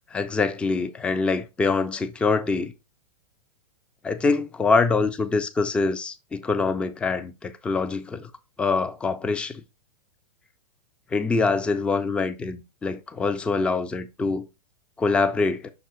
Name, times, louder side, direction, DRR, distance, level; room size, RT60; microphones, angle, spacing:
voice 1, 0.1-2.7 4.0-8.3 8.6-9.6 11.1-14.5 15.0-15.7, left 4 dB, 5° left, 0.4 m, -24 dB
5.9 x 3.8 x 4.6 m
figure-of-eight pair, 105°, 20 cm